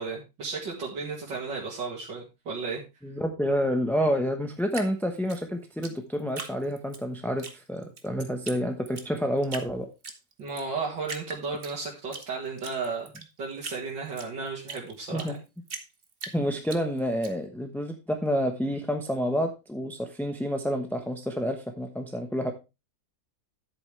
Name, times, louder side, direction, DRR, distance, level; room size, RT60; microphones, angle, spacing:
voice 1, 0.0-2.8 10.4-13.1 13.4-15.4, right 4 dB, 85° right, -3 dB, 2.6 m, -34 dB
voice 2, 3.0-9.9 15.1-15.4 16.3-22.5, equal, ahead, 4 dB, 0.7 m, -29 dB
Drip, 4.7-7.0 7.4-8.1 8.5-8.6 8.9-9.7 10.0-10.7 11.0-12.3 12.6-15.4 15.7-17.3, right 4 dB, 35° right, 1.3 m, -40 dB
10.5 x 8.5 x 3.3 m, 0.26 s
omnidirectional pair, 1.9 m